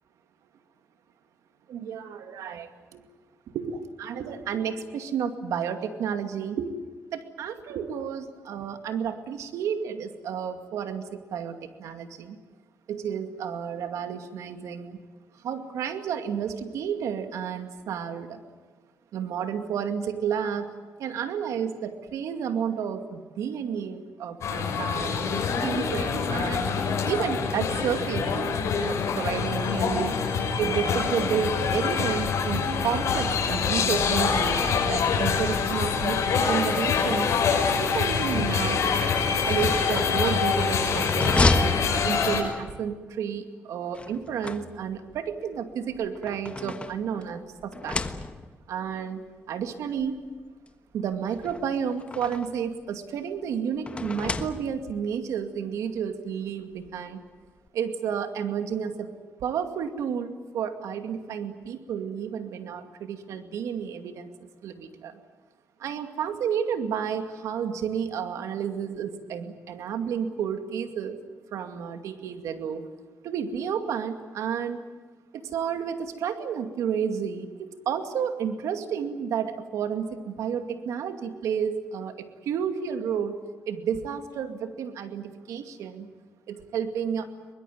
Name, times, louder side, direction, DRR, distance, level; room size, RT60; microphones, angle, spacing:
voice 1, 1.7-3.0 3.5-6.7 7.1-12.4 12.9-15.0 15.4-18.4 19.1-20.7 21.0-26.7 27.0-28.5 28.8-30.2 30.6-37.4 37.8-38.8 39.4-41.6 42.0-48.0 48.7-50.2 50.9-57.2 57.7-59.1 59.4-64.3 64.6-65.2 65.8-71.2 71.5-72.8 73.2-74.8 75.3-86.1 86.5-87.3, right 7 dB, 80° right, 7 dB, 2.3 m, -31 dB
sound 1, 24.4-42.4, left 5 dB, 70° left, 6.1 m, -25 dB
sound 2, 39.5-42.7 43.9-45.1 45.9-47.3 47.7-48.7 49.6-49.7 50.0-50.1 51.3-52.6 53.9-55.0, left 2 dB, 20° left, 1.4 m, -30 dB
23.5 x 21.0 x 9.4 m, 1.4 s
cardioid pair, 90°, 5 cm